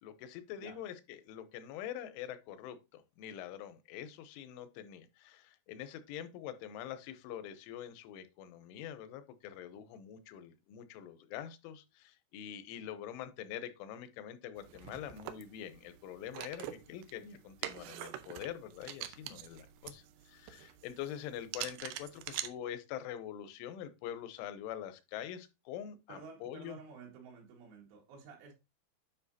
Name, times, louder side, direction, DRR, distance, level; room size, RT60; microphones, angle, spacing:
voice 1, 0.0-26.8, left 10 dB, 90° left, 3.3 m, -45 dB
sound 1, 14.6-22.5, right 12 dB, 85° right, 2.5 m, -45 dB
voice 2, 26.1-28.5, right 5 dB, 65° right, 3.9 m, -52 dB
9.6 x 5.7 x 2.8 m
omnidirectional pair, 5.4 m